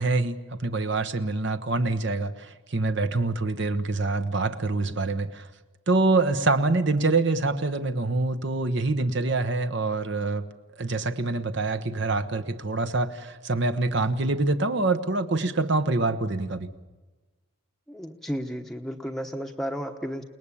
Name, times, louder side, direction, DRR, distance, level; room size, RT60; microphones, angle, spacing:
voice 1, 0.0-5.5 5.9-10.5 10.8-16.7, right 3 dB, 55° right, 9 dB, 1.1 m, -25 dB
voice 2, 17.9-20.2, equal, ahead, 2 dB, 1.0 m, -33 dB
29.0 x 19.5 x 8.6 m, 1.2 s
head